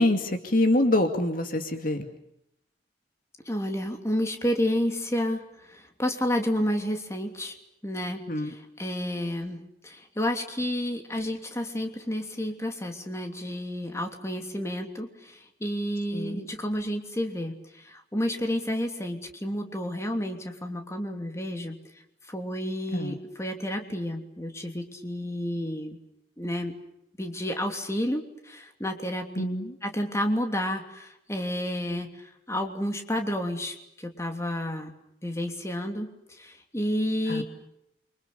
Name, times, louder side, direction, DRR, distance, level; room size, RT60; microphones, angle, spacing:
voice 1, 0.0-2.1 8.3-8.5 16.1-16.4 22.9-23.2 29.4-29.7 37.3-37.4, left 1 dB, 50° left, 6 dB, 2.5 m, -25 dB
voice 2, 3.4-7.5 7.8-21.8 22.3-26.0 26.4-26.7 27.2-29.4 29.8-34.9 35.2-37.4, equal, 15° left, 4 dB, 3.0 m, -31 dB
30.0 x 25.5 x 7.0 m, 0.81 s
head